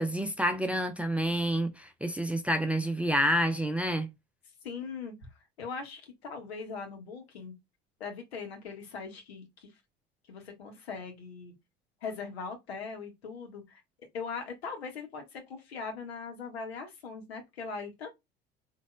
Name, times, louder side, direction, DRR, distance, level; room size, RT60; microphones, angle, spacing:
voice 1, 0.0-4.1, equal, 5° right, 0.6 m, -28 dB
voice 2, 4.6-5.1 5.6-7.6 8.0-9.7 10.3-11.5 12.0-13.8 14.1-18.1, left 5 dB, 70° left, 1.7 m, -40 dB
4.1 x 3.7 x 2.3 m
figure-of-eight pair, 65°, 32 cm